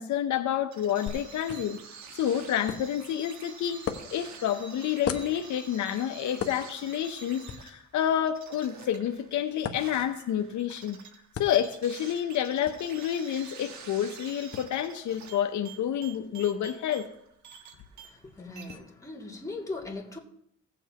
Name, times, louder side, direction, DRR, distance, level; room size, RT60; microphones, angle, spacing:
voice 1, 0.0-1.8 2.1-3.8 4.1-11.0 11.4-17.1, left 10 dB, 70° left, 6 dB, 0.8 m, -29 dB
sound 1, 0.7-18.3 18.6-18.8, right 6 dB, 70° right, 1.4 m, -48 dB
sound 2, 1.1-18.8, left 7 dB, 50° left, 1.0 m, -43 dB
voice 2, 17.9-20.2, left 2 dB, 10° left, -3 dB, 2.6 m, -39 dB
17.5 x 7.2 x 3.0 m, 0.72 s
cardioid pair, 90°, 30 cm